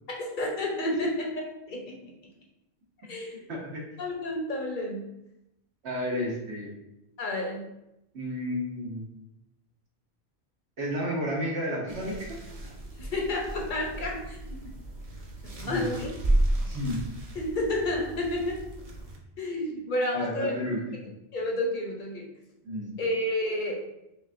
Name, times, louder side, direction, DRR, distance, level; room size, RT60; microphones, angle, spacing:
voice 1, 0.2-1.3 1.7-2.0 3.1-3.3 4.0-5.0 7.2-7.6 13.0-14.6 15.4-16.2 17.3-18.6 19.4-20.5 21.3-22.2 23.0-23.7, left 1 dB, 55° left, 0 dB, 0.8 m, -30 dB
voice 2, 3.3-3.8 5.8-6.7 8.1-9.1 10.8-12.4 15.6-15.8 16.6-17.0 20.1-21.1 22.6-22.9, equal, 85° right, -2 dB, 1.2 m, -32 dB
sound 1, 11.9-19.2, right 1 dB, 40° right, 0.6 m, -33 dB
5.2 x 2.3 x 2.5 m, 0.87 s
omnidirectional pair, 1.1 m